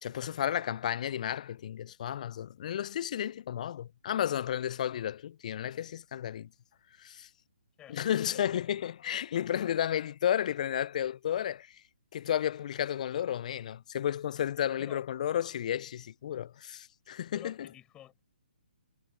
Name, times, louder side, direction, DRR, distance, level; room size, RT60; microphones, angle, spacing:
voice 1, 0.0-6.5 7.0-7.3 7.9-11.8 12.1-17.7, left 10 dB, 50° left, 0.4 m, -32 dB
voice 2, 17.3-18.2, left 12 dB, 15° left, 5.9 m, -50 dB
figure-of-eight pair, 135°, 5 cm